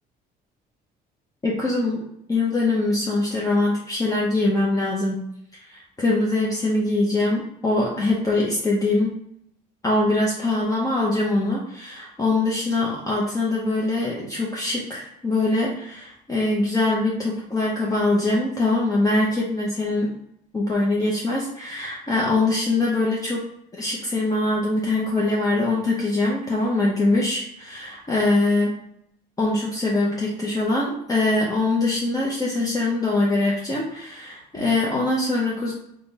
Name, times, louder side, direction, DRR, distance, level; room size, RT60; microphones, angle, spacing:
voice 1, 1.4-2.0 2.3-5.2 5.6-9.1 9.8-20.1 20.5-23.4 23.8-28.7 29.4-35.7, left 2 dB, 20° left, -4 dB, 0.7 m, -23 dB
3.6 x 2.3 x 4.0 m, 0.75 s
cardioid pair, 110°, 17 cm